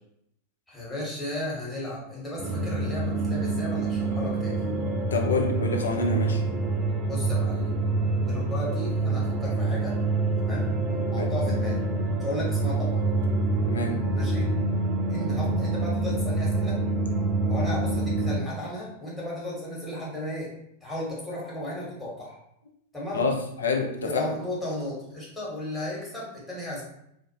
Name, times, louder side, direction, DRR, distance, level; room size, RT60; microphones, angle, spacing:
voice 1, 0.7-4.7 7.0-7.7 8.2-10.0 10.4-10.7 11.1-11.8 12.2-13.0 14.1-14.5 15.1-16.8 17.5-20.5 20.8-22.4 22.9-23.3 24.1-26.8, left 1 dB, 10° left, -6 dB, 1.1 m, -34 dB
sound 1, 2.4-18.4, right 2 dB, 25° right, 0.4 m, -26 dB
voice 2, 5.1-6.4 11.2-11.3 13.6-14.0 23.1-24.3, left 3 dB, 70° left, 3 dB, 0.4 m, -27 dB
2.4 x 2.0 x 2.7 m, 0.77 s
figure-of-eight pair, 90°, 0 cm